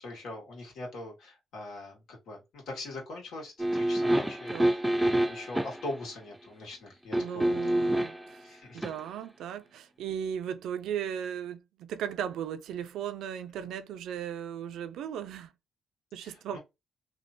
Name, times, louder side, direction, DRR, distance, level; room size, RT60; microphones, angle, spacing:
voice 1, 0.0-7.7 8.4-8.8 16.2-16.6, left 2 dB, 80° left, 1.9 m, -42 dB
sound 1, 3.6-5.9 7.1-8.3 8.8-8.9, right 1 dB, 5° right, 0.4 m, -27 dB
voice 2, 7.1-15.5 16.1-16.6, right 9 dB, 80° right, 0.4 m, -37 dB
3.1 x 2.9 x 2.5 m
cardioid pair, 90°, 0 cm